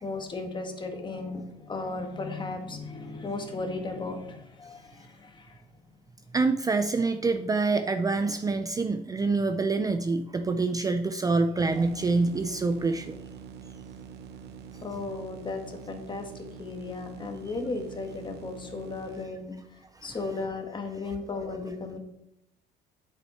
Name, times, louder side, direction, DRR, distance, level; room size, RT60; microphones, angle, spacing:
voice 1, 0.0-5.6 14.8-22.0, left 3 dB, 25° left, 5 dB, 1.6 m, -36 dB
voice 2, 6.3-13.2 20.0-20.2, right 3 dB, 20° right, 8 dB, 0.5 m, -26 dB
sound 1, 11.6-19.3, right 7 dB, 75° right, 0.8 m, -45 dB
8.8 x 7.1 x 4.3 m, 0.81 s
cardioid pair, 110°, 17 cm